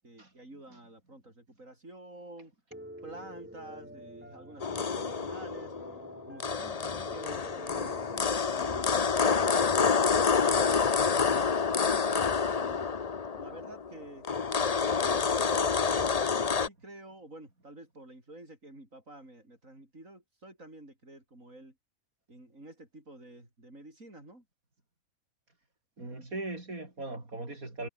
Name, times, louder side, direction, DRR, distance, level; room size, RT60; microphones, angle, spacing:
voice 1, 0.0-2.5 3.0-5.7 6.3-10.9 11.3-12.9 13.4-14.3 15.0-21.7 22.3-24.4, right 1 dB, 70° right, 8.3 m, -49 dB
Piano, 2.7-11.4, equal, 10° right, 3.8 m, -47 dB
sound 1, 4.6-16.7, left 5 dB, 35° left, 0.8 m, -28 dB
voice 2, 26.0-27.9, right 2 dB, 85° right, 6.0 m, -39 dB
omnidirectional pair, 1.4 m